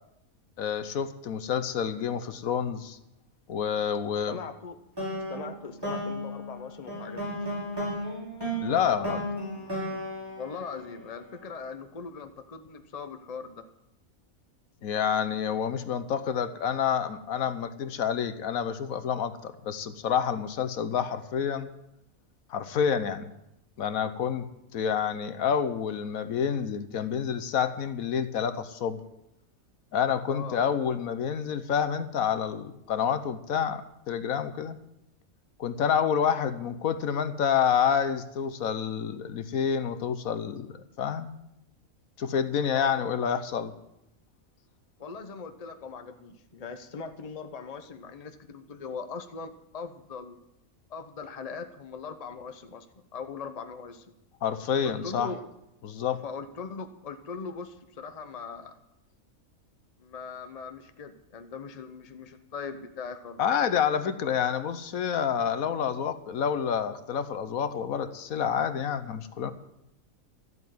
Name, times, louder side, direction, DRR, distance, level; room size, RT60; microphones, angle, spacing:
voice 1, 0.6-3.0 3.5-4.4 8.6-9.3 14.8-21.7 22.5-23.3 23.8-24.5 24.7-29.0 29.9-34.8 35.6-41.3 42.2-43.7 54.4-55.3 55.8-56.2 63.4-69.5, left 7 dB, 80° left, 11 dB, 1.3 m, -28 dB
voice 2, 4.3-4.8 5.3-7.5 10.4-13.7 30.3-30.6 42.6-43.1 45.0-50.4 50.9-52.9 53.1-54.1 54.8-55.4 56.2-58.8 60.0-63.4, left 5 dB, 30° left, 9 dB, 0.9 m, -40 dB
sound 1, 5.0-11.4, equal, 15° right, 5.7 m, -34 dB
13.0 x 8.2 x 9.3 m, 0.84 s
omnidirectional pair, 1.5 m